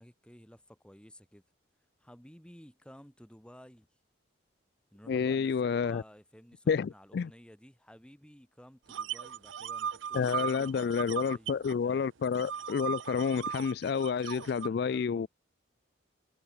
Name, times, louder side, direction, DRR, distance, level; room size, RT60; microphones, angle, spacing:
voice 1, 0.0-1.4 2.0-3.9 4.9-12.0 14.5-15.3, equal, 5° left, 2.8 m, -54 dB
voice 2, 5.1-6.0 6.7-7.3 10.1-15.3, left 6 dB, 55° left, 0.3 m, -29 dB
sound 1, 8.9-11.7 12.0-14.7, right 8 dB, 80° right, 0.5 m, -38 dB
head